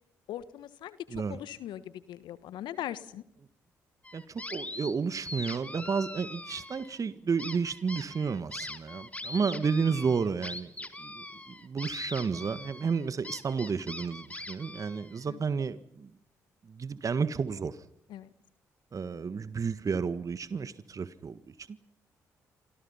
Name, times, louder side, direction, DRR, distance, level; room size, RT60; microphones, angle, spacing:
voice 1, 0.3-3.2 9.3-9.7 15.2-15.4 18.1-18.3, left 12 dB, 70° left, 15 dB, 1.4 m, -40 dB
sound 1, 4.0-4.9 5.2-7.0 7.4-15.2, left 2 dB, 15° left, 3.4 m, -42 dB
voice 2, 4.1-10.7 11.0-16.1 16.7-17.8 18.9-21.7, right 5 dB, 45° right, 13 dB, 1.6 m, -31 dB
29.5 x 26.0 x 5.8 m, 0.70 s
hypercardioid pair, 45°, 8 cm